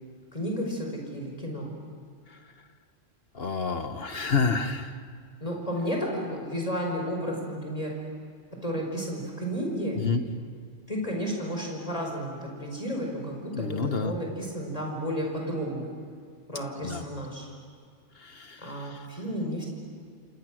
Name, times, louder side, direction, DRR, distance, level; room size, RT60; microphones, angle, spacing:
voice 1, 0.3-1.7 5.4-7.9 8.6-10.0 10.9-15.9 16.5-17.5 18.6-19.7, equal, 30° left, 0 dB, 5.1 m, -32 dB
voice 2, 3.3-5.0 9.9-10.2 13.5-14.1 16.8-17.0 18.1-19.0, left 4 dB, 55° left, 8 dB, 1.5 m, -29 dB
29.5 x 27.0 x 6.4 m, 2.1 s
omnidirectional pair, 1.2 m